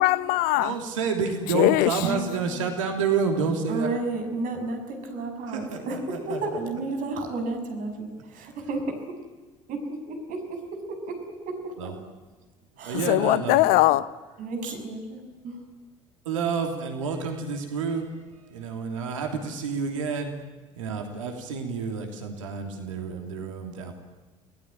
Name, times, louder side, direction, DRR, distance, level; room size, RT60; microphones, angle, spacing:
voice 1, 0.0-0.7 1.5-1.9 13.1-14.0, left 17 dB, 60° left, 1.0 m, -20 dB
voice 2, 0.6-3.9 5.5-6.4 11.8-11.9 12.9-13.6 16.2-20.3 20.8-23.9, right 5 dB, 75° right, 3.0 m, -29 dB
voice 3, 3.7-4.8 5.1-8.8 9.7-10.6 11.0-11.1 12.8-13.1 14.4-15.5, right 3 dB, 55° right, 6.5 m, -32 dB
28.5 x 19.0 x 9.2 m
figure-of-eight pair, 60°, 17 cm